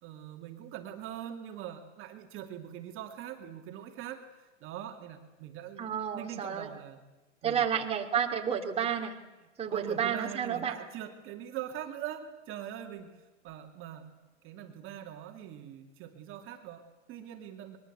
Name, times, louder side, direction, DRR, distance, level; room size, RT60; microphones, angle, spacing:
voice 1, 0.0-4.3 4.6-7.0 7.4-7.8 9.7-14.1 14.4-17.8, right 10 dB, 30° right, 4 dB, 2.6 m, -42 dB
voice 2, 5.8-6.7 7.4-9.1 9.6-10.8, right 8 dB, 15° right, 1 dB, 2.7 m, -31 dB
24.0 x 22.0 x 8.1 m, 1.1 s
hypercardioid pair, 120°, 39 cm